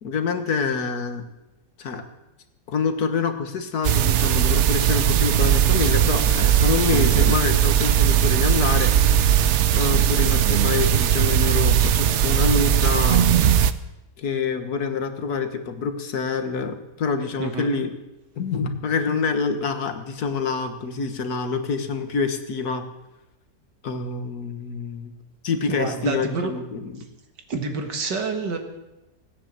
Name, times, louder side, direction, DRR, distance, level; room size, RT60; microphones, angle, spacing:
voice 1, 0.0-1.2 1.8-2.0 2.7-8.9 9.7-13.4 14.2-17.9 18.4-22.8 23.8-25.1 25.4-27.0, left 5 dB, 65° left, 8 dB, 1.8 m, -26 dB
sound 1, 3.8-13.7, right 10 dB, 60° right, 0.7 m, -19 dB
voice 2, 17.4-17.7 25.7-26.5 27.5-28.6, right 4 dB, 90° right, 5 dB, 2.5 m, -28 dB
18.0 x 9.7 x 7.5 m, 0.98 s
omnidirectional pair, 1.8 m